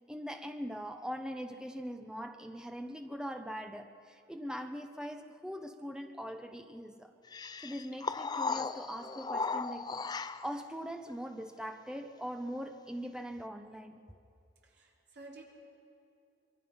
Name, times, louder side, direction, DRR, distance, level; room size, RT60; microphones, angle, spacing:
voice 1, 0.1-7.1 7.6-14.0, equal, 5° right, 6 dB, 0.9 m, -41 dB
sound 1, 7.3-10.6, left 4 dB, 20° left, 0.4 m, -36 dB
voice 2, 14.6-15.4, right 2 dB, 60° right, -3 dB, 4.2 m, -52 dB
26.0 x 22.5 x 5.6 m, 2.7 s
head